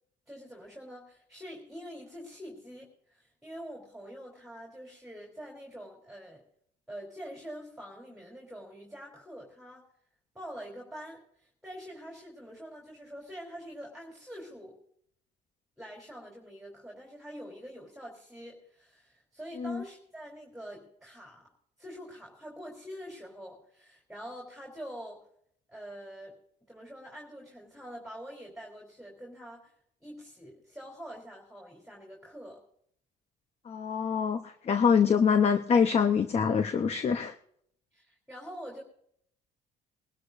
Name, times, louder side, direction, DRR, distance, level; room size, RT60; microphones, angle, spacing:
voice 1, 0.3-6.4 6.9-9.8 10.4-14.8 15.8-21.4 21.8-25.3 25.7-26.3 26.7-29.8 30.0-32.6 37.9-38.8, equal, ahead, -1 dB, 3.6 m, -45 dB
voice 2, 33.6-37.3, left 6 dB, 40° left, 8 dB, 0.9 m, -25 dB
22.0 x 12.5 x 2.7 m, 0.68 s
cardioid pair, 110°, 17 cm